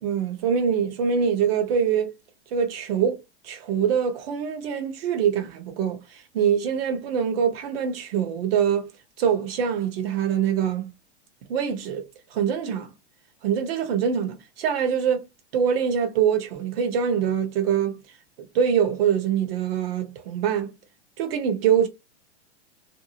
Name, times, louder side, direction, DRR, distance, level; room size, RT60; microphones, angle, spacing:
voice 1, 0.0-2.1 2.5-8.9 9.2-10.9 11.5-12.0 12.3-12.9 13.4-15.3 15.5-18.0 18.5-20.7 21.2-21.9, right 7 dB, 55° right, 0.9 m, -24 dB
2.7 x 2.0 x 2.7 m
hypercardioid pair, 130°, 35 cm